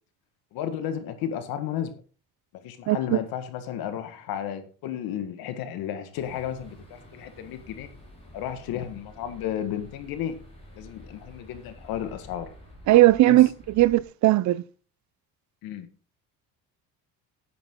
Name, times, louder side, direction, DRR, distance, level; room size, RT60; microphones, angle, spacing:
voice 1, 0.5-1.9 2.6-7.9 8.3-10.4 10.8-12.5 13.3-13.4 15.6-15.9, left 10 dB, 75° left, 1.7 m, -33 dB
voice 2, 2.9-3.2 12.9-13.5 13.8-14.6, right 16 dB, 50° right, 0.6 m, -18 dB
sound 1, 6.1-14.0, equal, 15° left, 6.0 m, -49 dB
10.5 x 10.5 x 3.8 m
cardioid pair, 145°, 36 cm